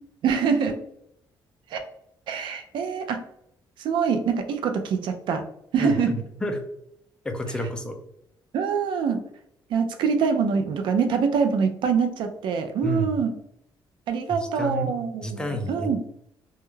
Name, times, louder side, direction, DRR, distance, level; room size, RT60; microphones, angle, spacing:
voice 1, 0.2-0.8 1.7-1.8 2.3-3.2 3.8-5.4 5.7-6.2 8.5-9.2 9.7-13.3 14.1-16.0, right 6 dB, 70° right, 7 dB, 0.4 m, -24 dB
voice 2, 5.8-6.6 7.2-8.0 12.8-13.1 14.4-14.9 15.2-16.0, equal, 10° left, 4 dB, 0.4 m, -30 dB
2.3 x 2.1 x 3.0 m, 0.76 s
cardioid pair, 145°, 8 cm